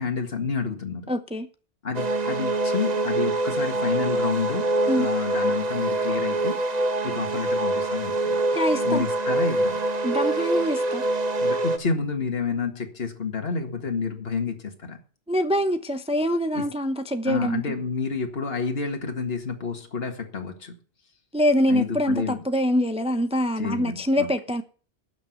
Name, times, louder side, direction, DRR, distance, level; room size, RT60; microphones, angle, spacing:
voice 1, 0.0-1.1 1.8-6.6 7.0-8.4 8.8-9.8 11.4-15.0 16.6-16.7 17.3-20.7 21.7-22.4 23.6-24.3, left 5 dB, 65° left, 2.1 m, -29 dB
voice 2, 1.1-1.5 4.9-5.1 8.5-9.0 10.0-11.0 15.3-17.6 21.3-24.6, equal, 5° right, 0.8 m, -24 dB
sound 1, 1.9-11.8, right 2 dB, 40° right, 1.0 m, -25 dB
12.0 x 6.3 x 9.3 m
omnidirectional pair, 1.1 m